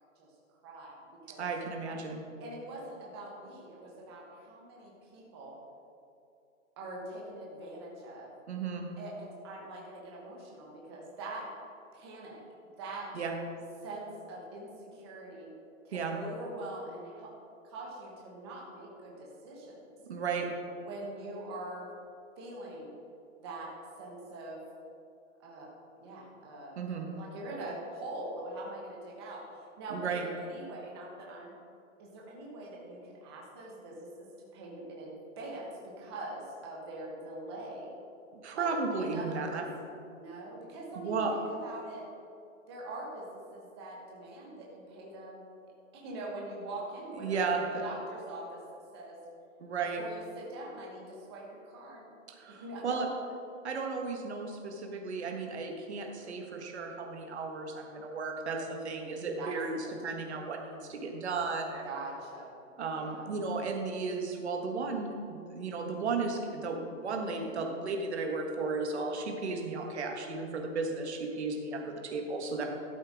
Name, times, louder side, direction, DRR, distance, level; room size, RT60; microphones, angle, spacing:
voice 1, 0.6-1.5 2.4-5.5 6.8-8.3 9.0-11.5 11.9-12.4 12.8-13.1 13.8-15.5 15.8-17.3 17.6-19.9 20.8-21.9 22.4-22.9 23.4-24.6 25.4-25.7 26.0-31.5 32.0-34.3 34.5-38.0 38.5-38.7 39.0-39.6 40.1-42.1 42.7-45.4 45.9-47.4 47.7-48.6 48.9-49.2 50.0-52.1 52.6-53.1 58.5-59.9 61.8-62.5 62.9-63.3, right 2 dB, 20° right, -3 dB, 1.1 m, -43 dB
voice 2, 1.4-2.2 8.5-8.9 13.1-13.3 15.9-16.2 20.0-20.5 26.8-27.1 29.9-30.3 38.4-39.6 40.9-41.3 47.1-47.8 49.6-50.0 52.3-53.1 53.6-61.9 62.8-72.6, right 4 dB, 55° right, 2 dB, 1.6 m, -34 dB
12.0 x 7.9 x 3.6 m, 2.6 s
hypercardioid pair, 175°, 40 cm